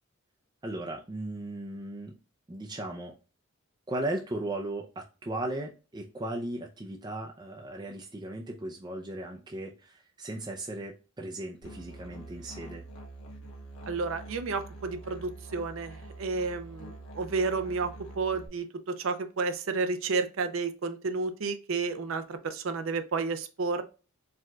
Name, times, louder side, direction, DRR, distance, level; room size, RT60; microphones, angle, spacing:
voice 1, 0.6-2.1 2.5-3.1 3.9-12.8, right 1 dB, 20° right, 1 dB, 0.4 m, -37 dB
Musical instrument, 11.6-18.5, right 2 dB, 70° left, 1.1 m, -45 dB
voice 2, 13.9-23.8, right 4 dB, 70° right, 9 dB, 0.5 m, -31 dB
4.6 x 3.6 x 2.3 m, 0.33 s
head